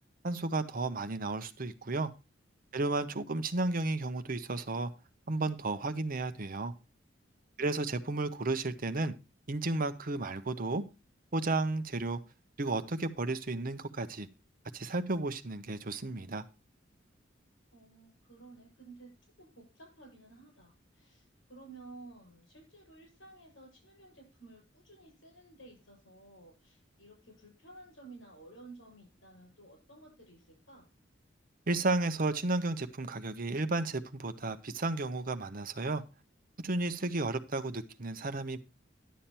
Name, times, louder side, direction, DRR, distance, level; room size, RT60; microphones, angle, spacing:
voice 1, 0.2-2.1 2.7-4.9 5.3-6.7 7.6-9.1 9.5-10.8 11.3-12.2 12.6-14.3 14.7-16.4 31.7-36.0 36.6-38.6, right 2 dB, 50° right, 0.8 m, -33 dB
voice 2, 17.7-30.9, right 2 dB, 90° left, 7.8 m, -54 dB
11.5 x 7.2 x 4.4 m
head